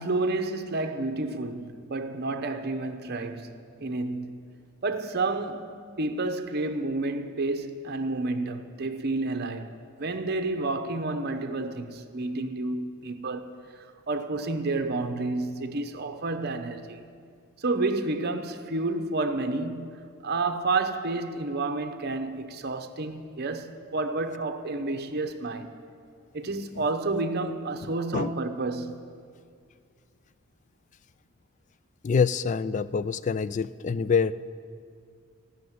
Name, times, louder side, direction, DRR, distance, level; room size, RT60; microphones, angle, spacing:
voice 1, 0.0-4.4 4.8-13.6 14.1-17.0 17.6-25.7 26.3-29.1, right 2 dB, 50° right, 0.8 m, -30 dB
voice 2, 27.8-28.3 32.0-34.3, left 5 dB, 35° left, 0.3 m, -26 dB
15.0 x 6.5 x 9.3 m
head